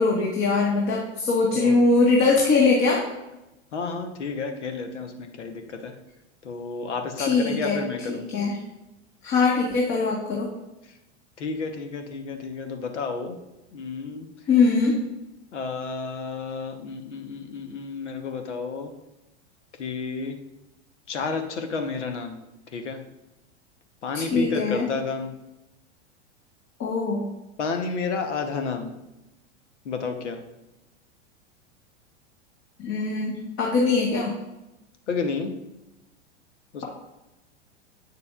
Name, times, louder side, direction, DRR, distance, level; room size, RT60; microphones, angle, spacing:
voice 1, 0.0-3.0 7.2-7.8 8.1-8.6 9.2-10.5 14.5-15.0 24.1-24.9 26.8-27.2 32.8-34.3, left 3 dB, 40° left, -3 dB, 1.5 m, -22 dB
voice 2, 3.7-6.0 6.4-8.2 11.4-13.4 13.7-14.3 15.5-18.9 19.8-20.4 21.1-22.4 22.7-23.0 24.0-25.3 27.6-29.0 29.8-30.4 35.1-35.5 36.7-36.8, left 4 dB, 80° left, 6 dB, 1.1 m, -31 dB
8.5 x 6.7 x 2.5 m, 0.97 s
hypercardioid pair, 100°, 35 cm